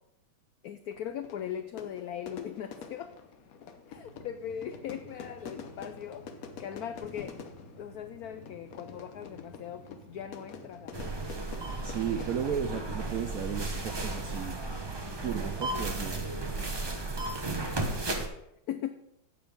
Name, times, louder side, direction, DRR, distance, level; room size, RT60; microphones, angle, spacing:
voice 1, 0.6-3.1 3.9-6.3 6.6-7.4 7.8-11.1 17.9-18.4 18.7-18.9, left 9 dB, 80° left, 10 dB, 0.8 m, -39 dB
Fire / Fireworks, 0.9-14.9, left 5 dB, 55° left, 1.1 m, -48 dB
sound 1, 4.0-17.2, right 1 dB, 45° right, 1.4 m, -54 dB
sound 2, 10.9-18.3, right 2 dB, 25° right, 0.5 m, -34 dB
voice 2, 11.8-14.6 15.2-16.3, right 8 dB, 70° right, 6 dB, 0.8 m, -34 dB
8.8 x 7.0 x 5.3 m, 0.80 s
omnidirectional pair, 2.1 m